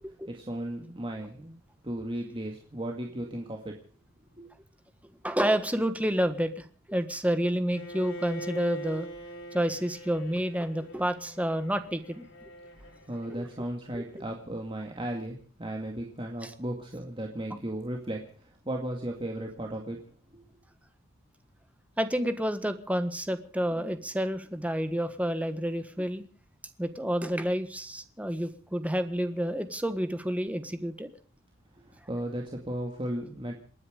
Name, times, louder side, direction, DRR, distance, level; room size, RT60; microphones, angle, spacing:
voice 1, 0.3-1.6 1.8-3.8 4.4-4.5 12.8-20.0 20.3-20.4 31.8-33.6, right 1 dB, 25° right, 1 dB, 2.1 m, -35 dB
voice 2, 5.2-9.1 9.5-12.2 13.4-13.5 13.9-14.1 16.4-16.5 22.0-26.2 26.8-31.1, equal, 5° right, 10 dB, 1.4 m, -29 dB
Bowed string instrument, 7.7-13.7, right 1 dB, 75° left, 4.2 m, -43 dB
28.0 x 10.0 x 5.1 m, 0.43 s
head